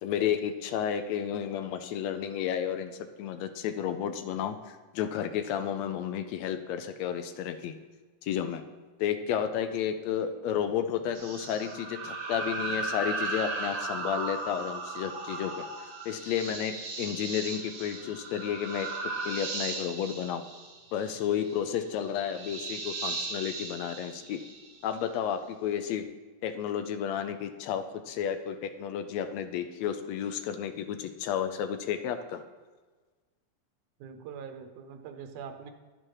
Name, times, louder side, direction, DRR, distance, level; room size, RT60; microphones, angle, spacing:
voice 1, 0.0-7.7 8.2-8.6 9.0-15.6 16.0-18.9 19.2-20.4 20.9-24.4 24.8-26.0 26.4-32.4, left 9 dB, 75° left, 9 dB, 1.7 m, -32 dB
sound 1, 11.1-25.0, right 3 dB, 65° right, 2.5 m, -36 dB
voice 2, 34.0-35.7, right 7 dB, 85° right, 7 dB, 2.3 m, -43 dB
10.5 x 6.1 x 4.7 m, 1.3 s
omnidirectional pair, 3.5 m